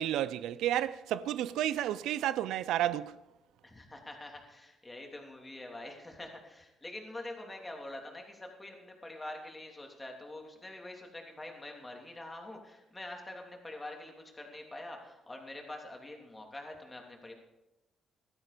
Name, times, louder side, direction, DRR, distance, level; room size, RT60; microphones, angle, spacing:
voice 1, 0.0-3.2, right 12 dB, 85° right, 0.4 m, -31 dB
voice 2, 3.6-17.3, left 1 dB, 15° left, 3.1 m, -45 dB
16.0 x 12.5 x 5.1 m
cardioid pair, 90°, 0 cm